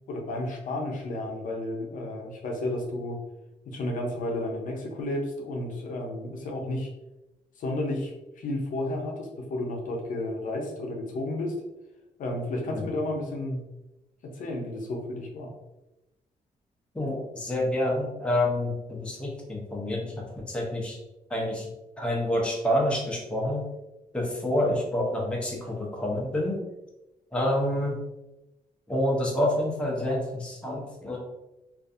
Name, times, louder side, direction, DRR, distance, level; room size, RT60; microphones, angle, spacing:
voice 1, 0.1-3.2 3.7-6.9 7.6-11.5 12.2-13.6 14.2-15.5, left 1 dB, 65° left, 1 dB, 0.6 m, -32 dB
voice 2, 16.9-21.0 21.3-21.7 22.0-23.6 24.1-26.6 27.3-28.0 28.9-31.2, left 1 dB, 5° left, -2 dB, 0.6 m, -28 dB
2.5 x 2.4 x 2.4 m, 0.98 s
cardioid pair, 125°, 15 cm